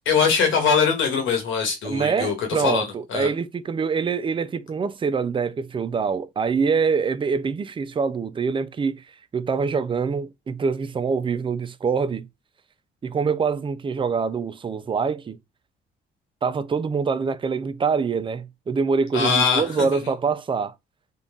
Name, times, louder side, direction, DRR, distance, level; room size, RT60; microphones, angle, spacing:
voice 1, 0.0-3.3 19.1-20.0, left 6 dB, 80° left, 1.4 m, -22 dB
voice 2, 1.8-9.0 9.3-12.3 13.0-15.4 16.4-20.7, right 5 dB, 25° right, 0.4 m, -25 dB
3.8 x 2.3 x 3.6 m
cardioid pair, 90°, 20 cm